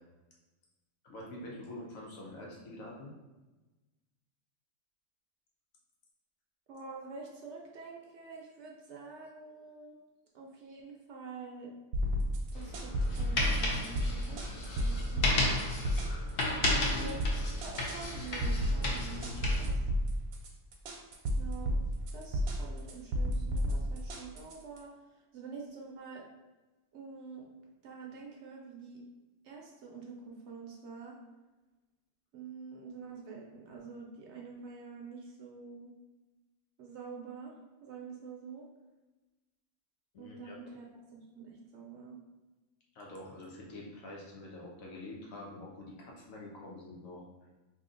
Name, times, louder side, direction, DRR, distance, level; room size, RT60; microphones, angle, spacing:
voice 1, 1.0-3.1 16.6-17.2 40.1-40.7 42.9-47.2, left 1 dB, 75° left, -3 dB, 1.2 m, -45 dB
voice 2, 6.7-9.9 10.3-11.7 12.5-15.6 17.0-17.2 17.6-19.8 21.4-21.8 22.1-26.2 26.9-27.4 27.8-29.0 29.4-31.2 32.3-35.9 36.8-38.7 40.2-40.8 41.1-42.2, right 5 dB, 65° right, -2 dB, 0.8 m, -47 dB
sound 1, 11.9-24.8, equal, 85° right, 1.1 m, -32 dB
sound 2, 12.5-19.7, left 2 dB, 55° left, 0.7 m, -34 dB
2.8 x 2.7 x 3.7 m, 1.1 s
omnidirectional pair, 1.4 m